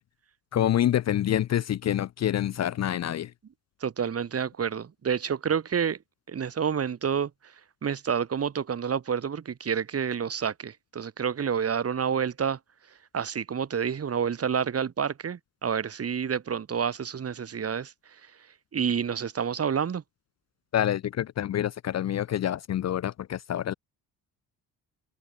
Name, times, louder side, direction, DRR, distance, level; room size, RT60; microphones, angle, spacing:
voice 1, 0.5-3.3 20.7-23.7, left 11 dB, 45° left, 0.7 m, -27 dB
voice 2, 3.8-6.0 6.3-7.3 7.8-12.6 13.1-17.9 18.7-20.0, right 7 dB, 40° right, 3.4 m, -29 dB
cardioid pair, 115°, 38 cm